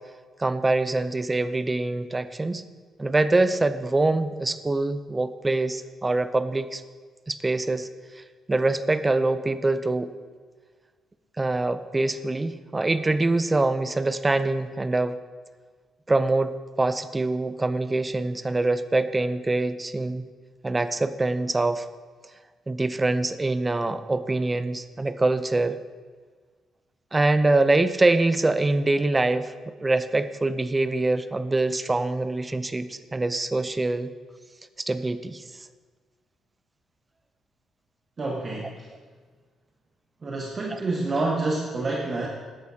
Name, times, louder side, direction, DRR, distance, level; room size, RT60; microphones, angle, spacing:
voice 1, 0.4-2.6 3.0-6.8 7.3-7.9 8.5-10.1 11.4-15.2 16.1-20.2 20.6-21.8 22.7-25.8 27.1-34.1 34.8-35.4 40.7-40.8, right 2 dB, 20° right, 12 dB, 0.5 m, -24 dB
voice 2, 38.2-38.9 40.2-42.3, right 2 dB, 40° right, -2 dB, 1.2 m, -28 dB
14.0 x 11.0 x 2.8 m, 1.5 s
cardioid pair, 90°, 0 cm